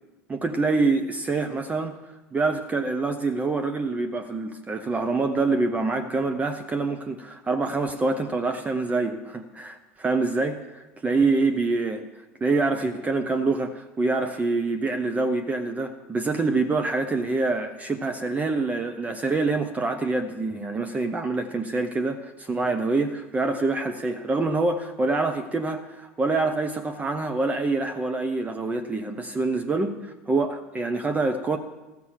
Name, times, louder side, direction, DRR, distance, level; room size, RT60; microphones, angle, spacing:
voice 1, 0.3-2.0 2.3-12.0 12.4-31.6, right 3 dB, 20° right, 7 dB, 0.8 m, -26 dB
14.0 x 6.0 x 7.3 m, 1.1 s
hypercardioid pair, 85°, 7 cm